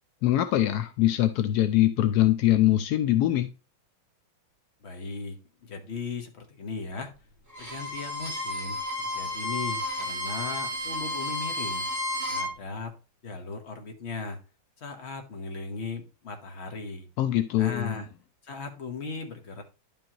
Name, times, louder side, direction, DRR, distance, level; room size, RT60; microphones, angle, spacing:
voice 1, 0.2-3.5 17.2-18.0, left 13 dB, 80° left, 0.8 m, -23 dB
voice 2, 4.8-7.1 7.6-11.9 12.3-13.0 13.2-14.4 14.8-17.1 17.6-18.1 18.4-19.6, left 4 dB, 40° left, 1.2 m, -37 dB
Bowed string instrument, 7.5-12.5, left 1 dB, 10° right, 1.8 m, -32 dB
11.0 x 5.3 x 2.9 m
omnidirectional pair, 2.2 m